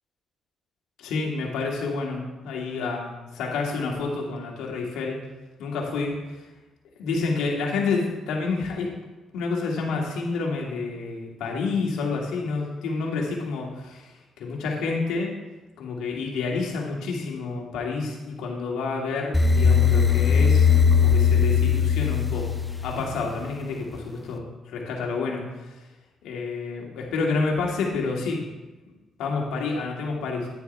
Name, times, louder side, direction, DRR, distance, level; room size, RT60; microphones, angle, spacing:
voice 1, 1.0-5.2 5.6-6.4 7.0-8.9 9.3-15.3 15.8-22.5 22.8-25.8 26.2-28.4 29.2-30.5, left 4 dB, 80° left, -1 dB, 2.2 m, -29 dB
sound 1, 19.3-23.4, left 6 dB, 10° left, 0.9 m, -20 dB
10.0 x 9.7 x 3.4 m, 1.2 s
supercardioid pair, 70°, 0 cm